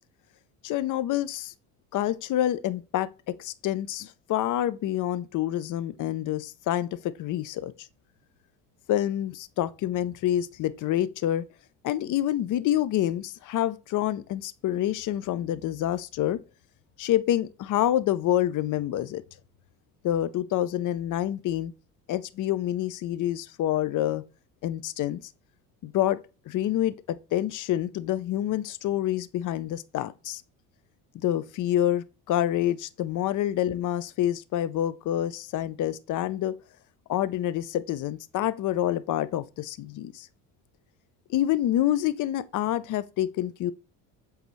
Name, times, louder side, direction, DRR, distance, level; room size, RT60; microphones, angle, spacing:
voice 1, 0.6-1.5 1.9-7.7 8.9-11.4 11.8-16.4 17.0-19.2 20.0-21.7 22.1-24.2 24.6-25.2 25.8-26.2 26.5-30.4 31.1-36.5 37.1-40.3 41.3-43.7, left 12 dB, 55° left, 0.6 m, -27 dB
8.0 x 3.9 x 3.1 m
cardioid pair, 100°, 37 cm